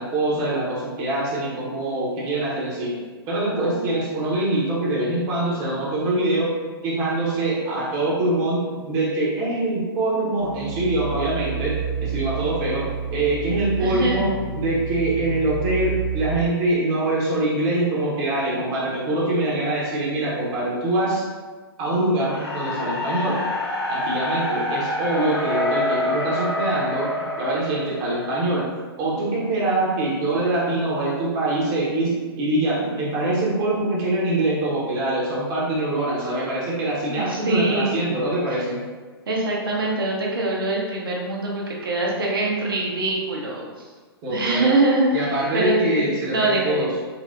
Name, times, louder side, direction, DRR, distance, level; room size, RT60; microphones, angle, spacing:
voice 1, 0.0-3.0 3.3-6.5 6.8-12.8 13.1-14.3 14.5-21.2 21.8-23.4 23.9-28.7 29.0-38.8 44.2-44.7 45.1-46.9, right 2 dB, 25° right, -5 dB, 0.8 m, -24 dB
sound 1, 10.4-16.3, right 7 dB, 25° left, 1.0 m, -29 dB
voice 2, 13.8-14.2 37.1-38.0 38.5-38.6 39.3-43.9 44.3-46.8, right 2 dB, 60° right, -2 dB, 0.8 m, -24 dB
sound 2, 22.3-28.4, left 1 dB, 85° left, 1.2 m, -26 dB
4.2 x 2.1 x 2.4 m, 1.4 s
figure-of-eight pair, 115°, 13 cm